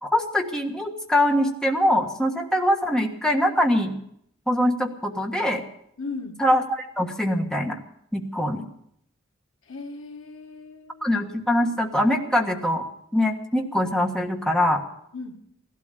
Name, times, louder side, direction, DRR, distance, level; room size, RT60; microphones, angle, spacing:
voice 1, 0.0-3.9 4.5-5.6 6.4-7.8 8.1-8.6 11.0-12.8 13.1-14.8, left 1 dB, 5° left, 2 dB, 1.4 m, -23 dB
voice 2, 6.0-6.4 9.7-11.1 15.1-15.4, left 3 dB, 70° left, 4 dB, 1.8 m, -37 dB
17.0 x 12.5 x 6.7 m, 0.72 s
head